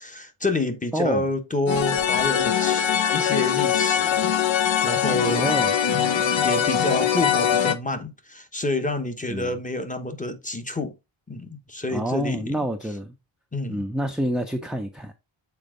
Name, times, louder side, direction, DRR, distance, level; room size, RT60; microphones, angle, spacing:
voice 1, 0.0-4.3 4.8-5.5 5.8-10.9 11.3-12.5 13.5-13.8, left 2 dB, 15° left, 0.9 m, -28 dB
voice 2, 0.9-1.2 5.3-5.8 9.3-9.5 11.9-13.1 13.7-15.1, equal, ahead, 0.5 m, -27 dB
sound 1, 1.7-7.8, left 8 dB, 70° left, 0.7 m, -22 dB
7.1 x 4.5 x 3.6 m
wide cardioid pair, 170°, 48 cm